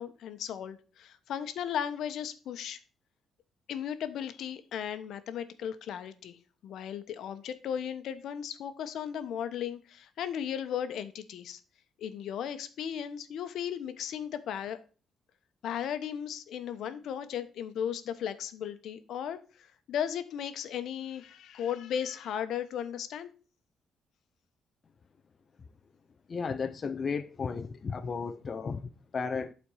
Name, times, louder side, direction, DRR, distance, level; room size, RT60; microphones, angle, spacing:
voice 1, 0.0-2.8 3.7-11.6 12.0-14.8 15.6-23.3, left 9 dB, 75° left, 0.9 m, -36 dB
voice 2, 26.3-29.5, left 5 dB, 35° left, 0.5 m, -34 dB
11.0 x 4.3 x 4.8 m
cardioid pair, 135°, 0 cm